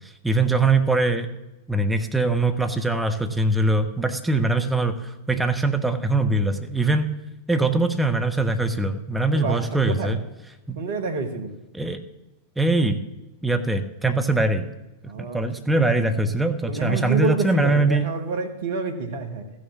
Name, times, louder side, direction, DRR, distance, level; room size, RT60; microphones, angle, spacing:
voice 1, 0.2-1.3 1.7-7.1 7.5-10.2 10.7-10.8 11.7-12.0 12.6-13.0 13.4-14.7 15.2-18.0, right 2 dB, 5° right, 6 dB, 1.0 m, -22 dB
voice 2, 9.3-10.2 10.7-11.5 15.0-15.4 16.7-19.5, right 3 dB, 55° right, 7 dB, 1.5 m, -28 dB
14.0 x 6.5 x 7.3 m, 0.99 s
figure-of-eight pair, 90°, 0 cm